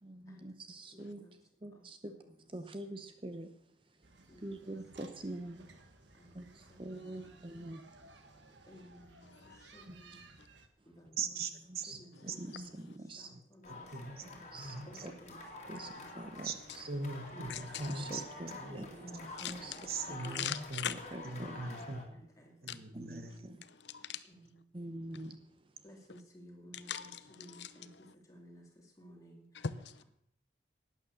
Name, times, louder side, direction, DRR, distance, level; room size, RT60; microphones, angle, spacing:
voice 1, 0.0-1.3 1.6-2.2 2.5-3.5 4.4-5.7 6.3-7.8 9.9-10.0 11.9-12.0 12.6-13.3 14.5-14.7 15.0-15.1 15.7-15.9 16.2-16.5 18.0-19.7 20.2-20.5 21.1-21.6 22.9-23.6 24.7-25.4, right 1 dB, 30° right, 8 dB, 0.7 m, -45 dB
voice 2, 0.9-1.3 2.0-2.3 4.3-4.4 6.2-6.3 6.7-6.8 7.2-7.4 8.7-9.3 9.7-10.2 10.9-11.2 12.0-12.7 13.2-13.9 14.9-16.1 17.3-17.6 17.9-18.1 18.6-19.2 19.5-20.1 21.5-22.8 23.2-23.6 24.3-24.6 25.8-27.1 27.4-27.9 28.3-28.6 29.0-29.4, equal, 20° left, 0 dB, 2.5 m, -56 dB
sound 1, 4.0-10.7, right 3 dB, 85° right, 1.5 m, -59 dB
voice 3, 7.0-7.3 9.2-9.7 10.4-10.5 12.8-13.0 16.0-16.1 16.4-16.5 17.5-17.6 19.4-20.1 20.3-20.9 22.7-22.8 23.7-24.2 25.1-25.4 26.7-28.1 29.5-30.0, left 8 dB, 75° left, 13 dB, 0.7 m, -42 dB
voice 4, 11.1-12.4 13.3-13.4 13.7-14.2 14.5-15.1 16.4-16.6 16.8-19.0 19.9-20.9 21.2-22.1 22.6-23.5, right 4 dB, 55° right, 8 dB, 1.2 m, -41 dB
sound 2, 13.6-22.0, left 2 dB, 40° left, 2.6 m, -49 dB
12.0 x 9.2 x 6.4 m, 0.73 s
head